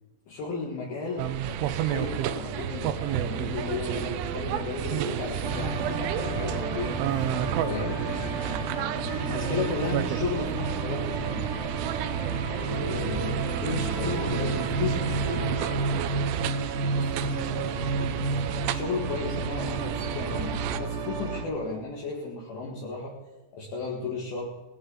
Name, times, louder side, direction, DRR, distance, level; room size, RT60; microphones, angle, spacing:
voice 1, 0.3-7.0 7.6-8.1 9.2-11.5 12.6-15.5 18.7-23.2 23.5-24.5, left 4 dB, 60° left, -2 dB, 3.2 m, -34 dB
sound 1, 0.8-15.8, left 2 dB, 80° left, 4.7 m, -40 dB
sound 2, 1.2-20.8, right 11 dB, 90° right, 3.2 m, -32 dB
sound 3, 5.4-21.4, right 3 dB, 60° right, 2.6 m, -32 dB
voice 2, 8.1-8.5 12.5-12.8 16.8-18.4 21.6-21.8, equal, 45° left, 2 dB, 3.3 m, -42 dB
18.5 x 17.0 x 4.0 m, 1.2 s
omnidirectional pair, 5.5 m